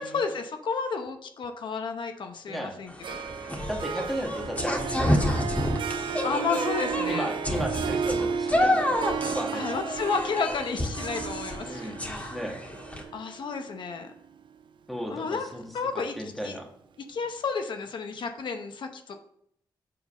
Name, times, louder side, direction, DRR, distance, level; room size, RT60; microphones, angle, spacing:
voice 1, 0.0-3.2 6.2-7.4 9.5-12.4 13.1-14.1 15.1-15.5 15.7-16.1 16.4-16.6 17.1-19.2, left 5 dB, 70° left, 6 dB, 0.8 m, -32 dB
voice 2, 2.5-2.8 3.7-5.5 7.1-9.8 11.6-12.0 12.3-12.6 14.9-15.7 16.2-16.7, equal, ahead, 1 dB, 1.6 m, -35 dB
sound 1, 2.9-13.0, left 1 dB, 15° left, 1.5 m, -29 dB
Harp, 3.0-14.5, right 7 dB, 75° right, 0.5 m, -33 dB
7.7 x 3.9 x 5.4 m, 0.71 s
cardioid pair, 90°, 8 cm